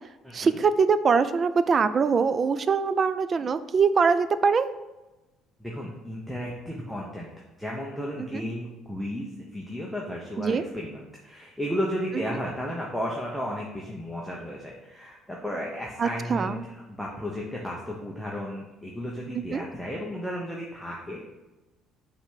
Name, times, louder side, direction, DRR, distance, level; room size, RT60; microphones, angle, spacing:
voice 1, 0.3-4.7 8.2-8.4 10.4-10.6 16.0-16.6 19.3-19.7, right 5 dB, 35° right, 13 dB, 0.3 m, -23 dB
voice 2, 5.6-7.3 7.6-21.2, equal, ahead, -3 dB, 0.8 m, -34 dB
5.6 x 3.4 x 5.7 m, 1.1 s
cardioid pair, 125°, 0 cm